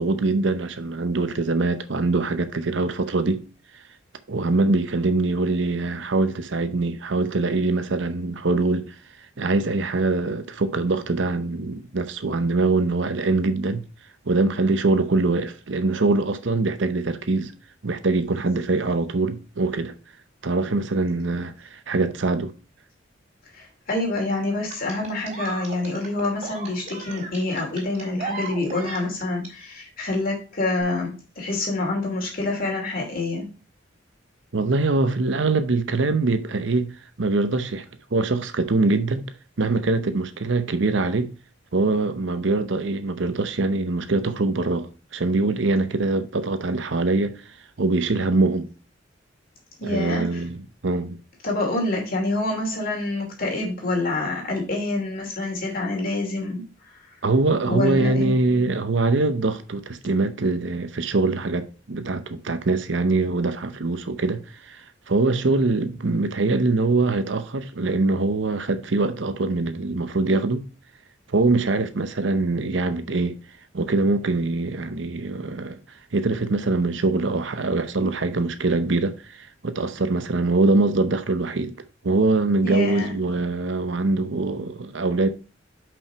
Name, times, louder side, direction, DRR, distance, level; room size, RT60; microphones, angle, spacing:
voice 1, 0.0-3.4 4.3-8.9 9.4-13.8 14.3-17.5 17.8-19.9 20.4-22.5 34.5-36.9 37.2-37.9 38.1-39.3 39.6-41.3 41.7-47.4 47.8-48.7 49.8-51.2 57.2-70.6 71.3-73.4 73.7-75.8 76.1-81.7 82.0-85.3, right 3 dB, 70° right, 0.8 m, -23 dB
voice 2, 23.5-33.5 49.8-50.4 51.4-56.6 57.7-58.4 82.6-83.1, left 2 dB, 50° left, 2.9 m, -27 dB
sound 1, 24.7-29.5 30.7-30.8, right 4 dB, 40° right, 3.1 m, -36 dB
5.8 x 5.4 x 4.5 m
head